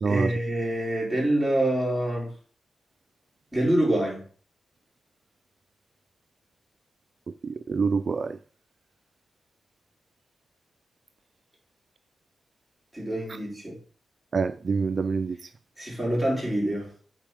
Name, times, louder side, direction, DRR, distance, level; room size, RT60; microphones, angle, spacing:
voice 1, 0.0-2.3 3.5-4.2 12.9-13.8 15.8-16.9, right 1 dB, ahead, 4.2 m, -26 dB
voice 2, 7.4-8.3 14.3-15.4, right 5 dB, 45° right, 0.3 m, -26 dB
9.1 x 4.3 x 4.9 m
wide cardioid pair, 110°, 0 cm